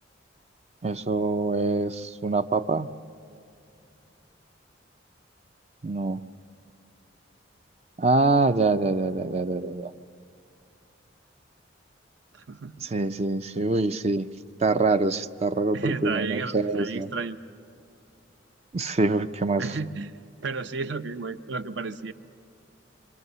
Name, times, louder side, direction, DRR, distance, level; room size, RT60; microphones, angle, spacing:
voice 1, 0.8-2.9 5.8-6.2 8.0-9.9 12.8-14.3 14.6-17.1 18.7-19.8, right 3 dB, 35° right, 10 dB, 0.5 m, -25 dB
voice 2, 12.3-12.7 15.7-17.4 19.6-20.1 20.4-22.1, right 4 dB, 65° right, 10 dB, 0.8 m, -32 dB
26.5 x 25.5 x 6.8 m, 2.6 s
head